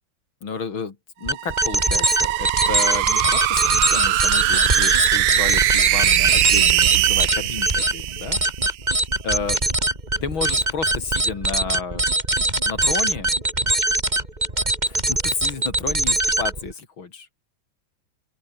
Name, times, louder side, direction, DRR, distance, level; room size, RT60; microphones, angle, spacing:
voice 1, 0.4-8.4 9.2-9.6 10.2-12.0 12.6-13.3 14.9-17.3, left 5 dB, 90° left, 3.8 m, -31 dB
sound 1, 1.3-16.7, right 2 dB, 20° right, 3.7 m, -22 dB
sound 2, 1.3-8.8, right 15 dB, 75° right, 1.3 m, -21 dB
open air
omnidirectional pair, 2.1 m